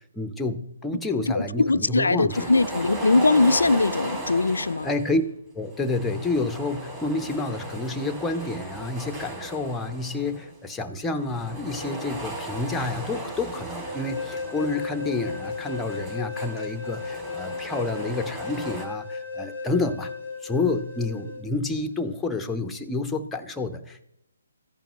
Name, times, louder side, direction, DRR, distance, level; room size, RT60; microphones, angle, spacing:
voice 1, 0.1-2.5 4.8-5.2 5.5-20.1 20.4-24.1, left 3 dB, 5° left, 0.7 m, -29 dB
voice 2, 1.2-4.9, left 3 dB, 90° left, 0.4 m, -21 dB
sound 1, 2.3-5.1 5.7-10.5 11.1-18.9, right 1 dB, 10° right, 2.3 m, -36 dB
sound 2, 13.8-21.4, left 4 dB, 80° right, 3.1 m, -35 dB
15.0 x 5.1 x 3.0 m
hypercardioid pair, 155°, 0 cm